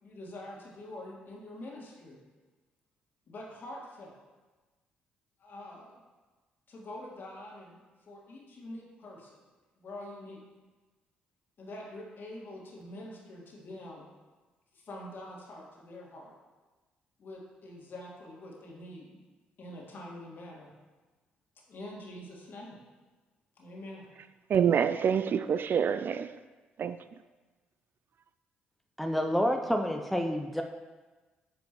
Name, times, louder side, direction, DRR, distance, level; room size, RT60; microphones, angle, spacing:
voice 1, 0.0-2.2 3.3-4.2 5.4-6.0 6.7-7.8 8.1-9.4 9.8-10.4 11.6-14.1 14.7-16.3 17.2-19.2 19.6-20.7 21.7-22.8 23.6-24.1, left 1 dB, 50° left, 2.0 m, -45 dB
voice 2, 24.5-26.3 26.8-27.0, right 7 dB, 50° right, 0.3 m, -26 dB
voice 3, 29.0-30.6, equal, ahead, 0.6 m, -28 dB
9.0 x 5.2 x 3.1 m
hypercardioid pair, 50°, 4 cm